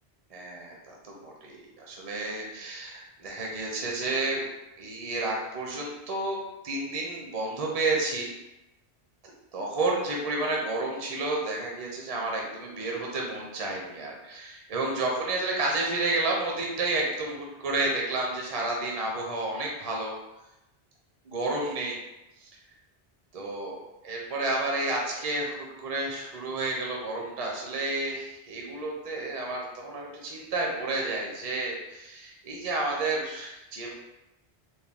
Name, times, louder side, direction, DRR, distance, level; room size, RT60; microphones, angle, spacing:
voice 1, 0.3-4.5 4.8-6.4 6.6-8.3 9.5-20.2 21.2-22.0 22.4-22.5 23.3-23.8 24.0-33.9, right 2 dB, 40° right, -1 dB, 0.6 m, -31 dB
4.2 x 2.2 x 3.5 m, 0.96 s
omnidirectional pair, 1.1 m